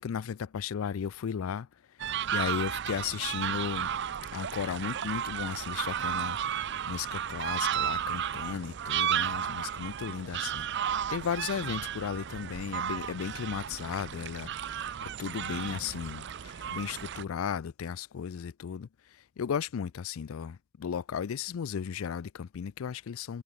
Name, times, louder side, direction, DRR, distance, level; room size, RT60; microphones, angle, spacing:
voice 1, 0.0-1.7 2.3-3.9 4.3-6.4 6.9-10.7 11.1-14.5 15.2-18.9 19.4-23.4, left 7 dB, 90° left, 0.4 m, -35 dB
sound 1, 2.0-17.2, right 9 dB, 60° right, 0.6 m, -33 dB
head